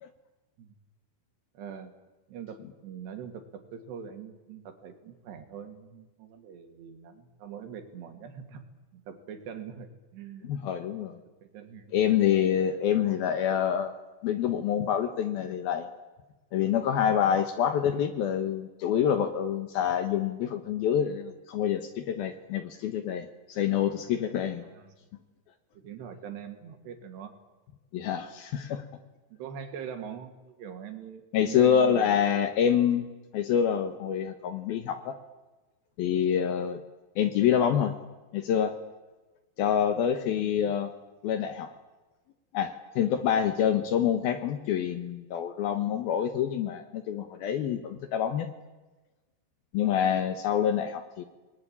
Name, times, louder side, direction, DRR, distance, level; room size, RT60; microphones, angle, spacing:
voice 1, 1.5-1.9 2.3-8.6 8.9-10.6 11.4-12.0 24.6-25.0 25.7-27.3 29.3-32.1 40.3-40.5 50.1-50.4, right 8 dB, 70° right, 7 dB, 4.1 m, -43 dB
voice 2, 10.4-11.2 11.9-13.9 14.2-15.9 16.5-24.6 27.9-28.8 31.3-33.1 33.3-35.2 36.0-36.8 37.2-37.9 38.3-38.7 39.6-40.9 41.2-41.7 42.5-48.5 49.7-51.2, left 9 dB, 70° left, 10 dB, 2.5 m, -26 dB
27.5 x 20.0 x 10.0 m, 1.2 s
omnidirectional pair, 5.3 m